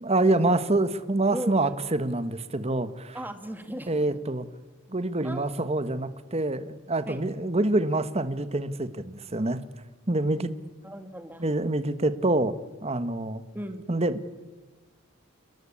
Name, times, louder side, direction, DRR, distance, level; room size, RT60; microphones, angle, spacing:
voice 1, 0.0-3.2 3.9-4.4 4.9-9.6 10.1-10.5 11.4-12.5 12.8-13.4 13.9-14.3, right 2 dB, 30° right, 12 dB, 1.3 m, -26 dB
voice 2, 3.1-3.9 5.2-5.5 7.1-7.2 10.8-11.5 13.5-14.1, right 1 dB, 10° right, 7 dB, 2.2 m, -37 dB
29.5 x 20.5 x 8.6 m, 1.2 s
head